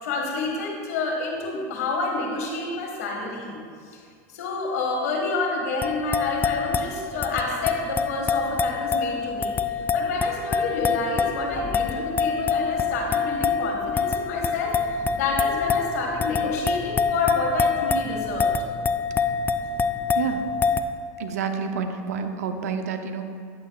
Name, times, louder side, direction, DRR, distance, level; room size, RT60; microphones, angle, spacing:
voice 1, 0.0-3.6 3.9-9.5 9.9-14.7 15.1-18.5, left 3 dB, 85° left, 0 dB, 1.6 m, -29 dB
sound 1, 5.8-20.8, left 5 dB, 20° left, 0.3 m, -26 dB
voice 2, 21.2-23.2, right 6 dB, 90° right, 7 dB, 0.6 m, -28 dB
9.8 x 8.4 x 2.3 m, 2.2 s
supercardioid pair, 110°, 8 cm